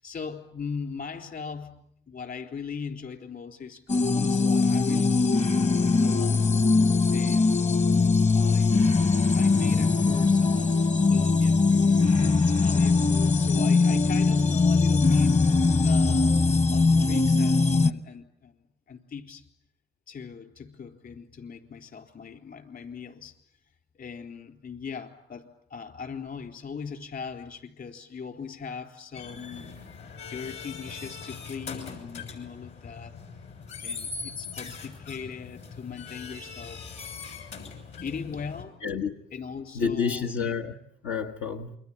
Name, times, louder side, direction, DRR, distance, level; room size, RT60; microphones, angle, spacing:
voice 1, 0.0-5.5 6.0-6.5 7.1-9.0 9.3-15.6 15.8-18.6 18.9-19.4 20.1-23.4 24.0-29.7 30.2-33.1 33.8-37.0 38.0-38.8 39.3-40.6, left 6 dB, 50° left, 7 dB, 3.9 m, -39 dB
sound 1, 3.9-17.9, left 4 dB, 35° left, 1.1 m, -21 dB
sound 2, 29.1-38.6, left 5 dB, 65° left, 6.7 m, -41 dB
voice 2, 38.8-39.2 39.7-40.8 41.0-41.8, left 6 dB, 90° left, 3 dB, 1.4 m, -29 dB
28.5 x 23.0 x 8.7 m, 0.68 s
cardioid pair, 90°, 20 cm